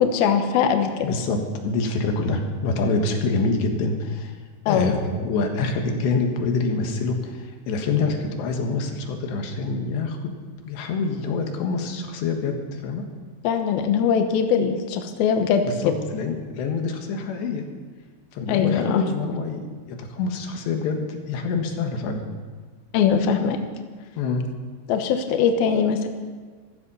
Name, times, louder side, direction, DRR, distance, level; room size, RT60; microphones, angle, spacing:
voice 1, 0.0-1.1 4.7-4.9 13.4-15.9 18.5-19.0 22.9-23.6 24.9-26.1, left 7 dB, 70° left, 6 dB, 2.8 m, -21 dB
voice 2, 1.0-4.3 4.7-10.3 10.7-13.0 15.6-15.8 16.1-17.6 18.3-22.2 24.2-24.4, left 3 dB, 90° left, 4 dB, 3.8 m, -26 dB
15.0 x 14.0 x 5.6 m, 1.5 s
omnidirectional pair, 4.8 m